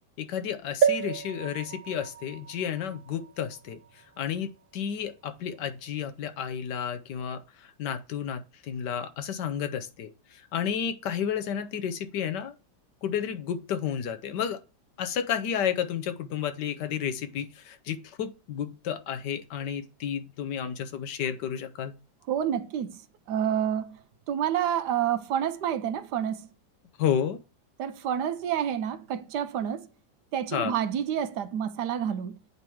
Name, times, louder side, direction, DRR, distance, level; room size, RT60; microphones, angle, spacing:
voice 1, 0.2-3.8 4.2-7.4 7.8-12.5 13.0-14.6 15.0-22.0 27.0-27.4 30.5-30.7, left 8 dB, 70° left, 1.3 m, -31 dB
sound 1, 0.8-4.5 5.1-5.2 5.4-5.5, right 7 dB, 90° right, 1.6 m, -31 dB
voice 2, 22.3-23.0 23.3-24.0 24.3-26.5 27.8-29.9 30.3-32.4, right 9 dB, 70° right, 1.2 m, -29 dB
8.3 x 3.0 x 4.9 m
omnidirectional pair, 2.1 m